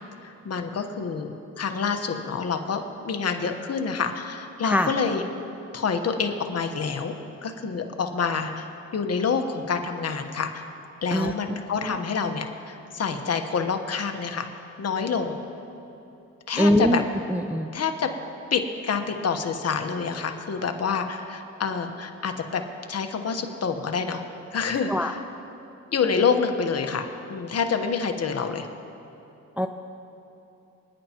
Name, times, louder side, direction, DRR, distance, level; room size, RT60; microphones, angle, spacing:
voice 1, 0.2-5.2 5.7-7.1 7.4-10.6 11.0-14.5 14.8-15.4 16.5-17.0 17.7-18.1 18.5-22.6 22.9-24.2 24.5-25.2 25.9-28.7, left 5 dB, 50° left, 5 dB, 1.3 m, -27 dB
voice 2, 11.1-11.9 16.6-17.0 17.3-17.7 24.9-25.1 29.6-29.7, equal, 5° right, 6 dB, 0.5 m, -23 dB
28.0 x 10.5 x 3.0 m, 2.9 s
cardioid pair, 75°, 31 cm